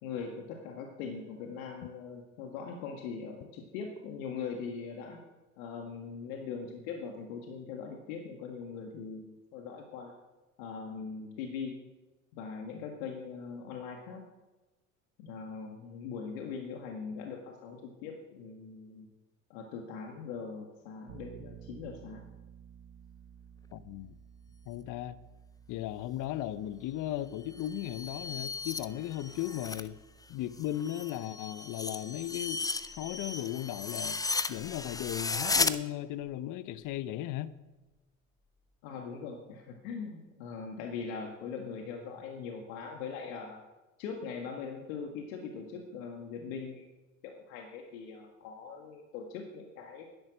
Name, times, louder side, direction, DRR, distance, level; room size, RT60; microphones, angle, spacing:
voice 1, 0.0-5.2 5.6-10.1 10.6-11.8 12.3-14.2 15.2-19.1 19.5-22.3 38.8-43.6 44.0-46.9 47.2-50.0, left 5 dB, 70° left, 1.8 m, -41 dB
Bass guitar, 21.1-30.9, right 9 dB, 50° right, 1.4 m, -54 dB
voice 2, 23.7-24.1 24.7-25.2 25.7-30.0 30.3-32.6 33.0-34.2 34.5-37.5, left 13 dB, 45° left, 0.8 m, -36 dB
sound 1, 27.5-29.9 30.2-35.8, left 3 dB, 10° left, 0.5 m, -35 dB
11.0 x 10.5 x 6.3 m
hypercardioid pair, 75°, 42 cm